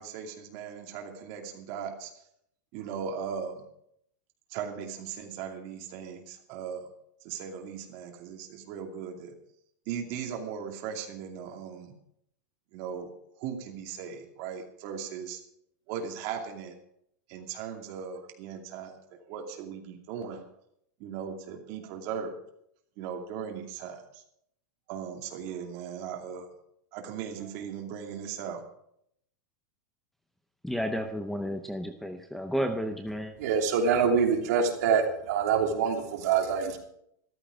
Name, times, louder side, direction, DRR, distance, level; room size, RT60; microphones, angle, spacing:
voice 1, 0.0-2.1 2.7-3.6 4.5-6.9 7.2-9.3 9.9-11.9 12.7-13.1 13.4-15.4 15.9-16.8 17.3-20.4 21.0-22.4 23.0-24.2 24.9-26.5 26.9-28.6, right 7 dB, 40° right, 2 dB, 2.6 m, -38 dB
voice 2, 30.6-33.3, equal, ahead, 6 dB, 0.6 m, -32 dB
voice 3, 33.4-36.8, right 6 dB, 60° right, 2 dB, 3.0 m, -25 dB
14.0 x 13.0 x 5.1 m, 0.73 s
supercardioid pair, 170°, 10 cm